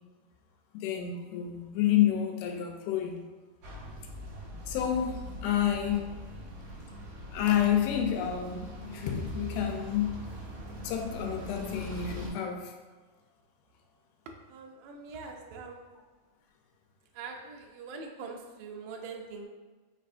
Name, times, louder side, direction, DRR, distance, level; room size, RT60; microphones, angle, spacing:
voice 1, 0.7-3.2 4.7-6.2 7.3-10.2 10.8-12.7, left 10 dB, 90° left, 3 dB, 2.5 m, -29 dB
sound 1, 3.6-12.3, equal, 65° right, 1.5 m, -41 dB
voice 2, 14.5-16.0 17.1-19.5, right 4 dB, 85° right, 2 dB, 1.9 m, -43 dB
5.5 x 3.2 x 2.5 m, 1.3 s
omnidirectional pair, 4.3 m